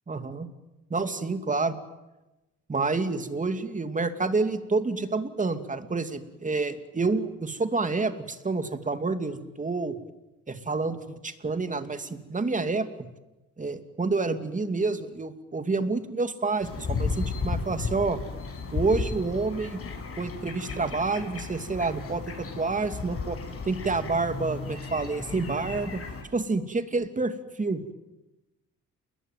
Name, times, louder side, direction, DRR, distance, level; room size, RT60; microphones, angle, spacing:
voice 1, 0.1-0.5 0.9-1.8 2.7-10.0 10.5-12.9 13.6-18.2 18.7-19.8 20.2-23.4 23.6-26.0 26.3-27.9, right 3 dB, 25° right, 9 dB, 2.7 m, -28 dB
sound 1, 16.6-26.2, left 4 dB, 50° left, 6.7 m, -34 dB
29.5 x 21.5 x 9.3 m, 1.0 s
cardioid pair, 90°, 30 cm